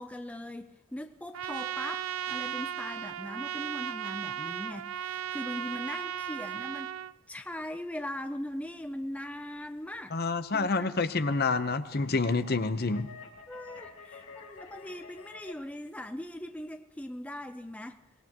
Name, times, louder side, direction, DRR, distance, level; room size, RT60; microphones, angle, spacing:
voice 1, 0.0-7.0 7.3-10.2 10.5-11.0 13.5-18.0, left 1 dB, 5° left, 8 dB, 0.5 m, -40 dB
Trumpet, 1.3-7.1, right 9 dB, 80° right, 0.4 m, -36 dB
sound 1, 9.9-15.5, left 4 dB, 75° left, 4.9 m, -51 dB
voice 2, 10.1-13.1, left 3 dB, 50° left, 11 dB, 0.8 m, -28 dB
23.5 x 20.0 x 3.0 m, 1.1 s
head